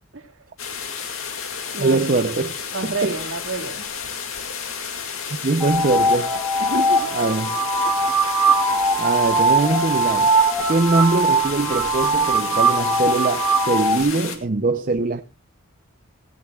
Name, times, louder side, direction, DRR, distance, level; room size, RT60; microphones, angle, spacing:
sound 1, 0.6-14.4, left 6 dB, 75° left, 2.1 m, -32 dB
voice 1, 1.8-2.6 2.8-3.2 5.3-6.3 7.1-7.6 9.0-10.3 10.7-15.2, right 3 dB, 40° right, 0.6 m, -22 dB
voice 2, 2.7-3.8 6.6-7.1, right 3 dB, 70° right, 2.1 m, -28 dB
sound 2, 5.6-14.0, right 2 dB, 10° right, 3.0 m, -20 dB
17.0 x 16.5 x 2.3 m
head